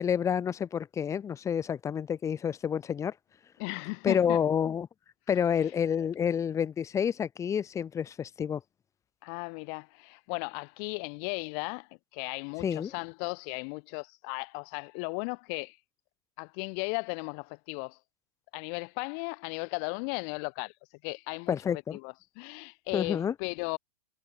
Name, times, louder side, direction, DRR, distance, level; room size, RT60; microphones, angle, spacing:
voice 1, 0.0-3.1 4.0-4.9 5.3-8.6 12.6-12.9 21.5-22.0 22.9-23.3, left 8 dB, 15° left, 5.2 m, -29 dB
voice 2, 3.6-4.4 5.6-5.7 9.2-15.8 16.4-18.0 18.5-20.7 21.0-21.5 21.9-23.8, left 40 dB or more, 35° left, 3.4 m, -36 dB
supercardioid pair, 165°, 20 cm